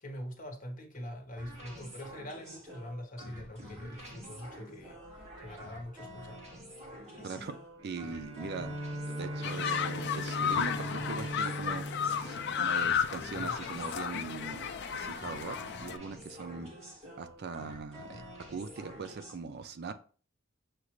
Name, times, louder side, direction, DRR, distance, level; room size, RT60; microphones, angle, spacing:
voice 1, 0.0-5.0 5.4-6.4 7.2-7.5, left 1 dB, 40° left, 3 dB, 1.1 m, -44 dB
sound 1, 1.3-19.3, equal, 35° right, 1.7 m, -48 dB
voice 2, 7.8-8.7 9.1-11.9 12.2-16.7 17.2-18.2 18.5-19.9, right 4 dB, 55° right, 10 dB, 0.4 m, -41 dB
Bowed string instrument, 7.8-13.3, equal, 85° right, 1.8 m, -40 dB
sound 2, 9.4-16.0, left 7 dB, 55° left, 0.4 m, -33 dB
6.4 x 2.4 x 3.0 m, 0.39 s
head